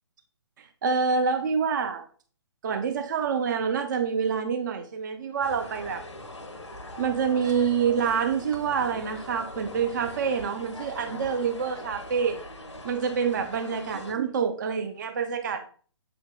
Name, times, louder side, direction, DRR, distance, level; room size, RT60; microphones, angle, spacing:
voice 1, 0.8-2.0 2.6-6.0 7.0-12.4 12.8-15.7, right 6 dB, 40° right, 7 dB, 0.4 m, -27 dB
sound 1, 5.4-14.1, left 1 dB, 80° left, 0.6 m, -42 dB
5.7 x 3.4 x 2.3 m, 0.43 s
figure-of-eight pair, 130°, 15 cm